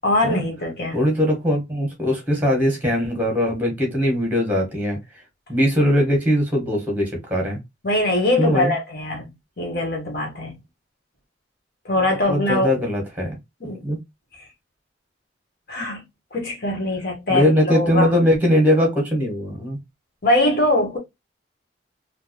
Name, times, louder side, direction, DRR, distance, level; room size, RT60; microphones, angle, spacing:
voice 1, 0.0-1.0 7.8-10.6 11.8-12.7 13.6-13.8 15.7-16.0 16.3-18.1 20.2-21.0, left 1 dB, 55° left, 1.5 m, -22 dB
voice 2, 0.9-5.0 5.5-7.6 8.4-8.7 12.3-13.3 13.8-14.0 17.3-19.8, equal, 10° right, 1.5 m, -20 dB
3.6 x 2.5 x 3.0 m
head